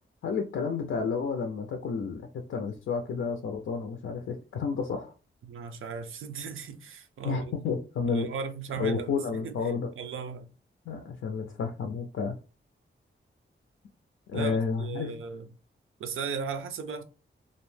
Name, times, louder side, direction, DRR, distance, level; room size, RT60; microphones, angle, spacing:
voice 1, 0.2-5.1 7.2-8.3 8.8-9.9 10.9-12.3 14.3-15.1, left 5 dB, 85° left, 0.4 m, -31 dB
voice 2, 5.4-7.5 8.0-9.2 9.4-10.5 14.3-15.5 16.0-17.0, right 6 dB, 90° right, 0.4 m, -37 dB
2.5 x 2.1 x 3.1 m
wide cardioid pair, 150°, 21 cm